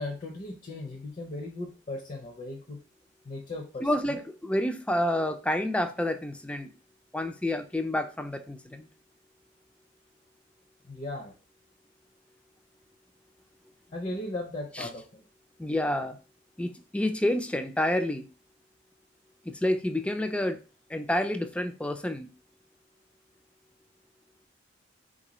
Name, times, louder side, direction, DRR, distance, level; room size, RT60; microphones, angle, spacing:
voice 1, 0.0-2.8 3.2-4.2 10.9-11.3 13.9-15.0, left 2 dB, 40° left, 1 dB, 0.7 m, -37 dB
voice 2, 3.8-6.7 7.1-8.9 14.8-14.9 15.6-16.2 16.6-18.3 19.5-20.6 20.9-22.3, left 1 dB, 5° left, 8 dB, 0.4 m, -29 dB
4.3 x 3.8 x 3.0 m, 0.35 s
head